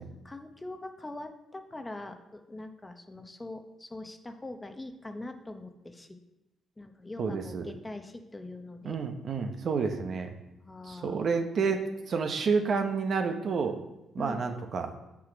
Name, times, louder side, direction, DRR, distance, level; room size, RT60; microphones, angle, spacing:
voice 1, 0.0-6.2 6.8-9.0 10.6-11.2 14.2-14.4, left 2 dB, 15° left, 7 dB, 0.7 m, -43 dB
voice 2, 7.2-7.6 8.8-10.3 10.9-13.8 14.1-14.9, right 5 dB, 55° right, 6 dB, 0.8 m, -29 dB
6.1 x 6.0 x 5.1 m, 0.96 s
cardioid pair, 90°, 0 cm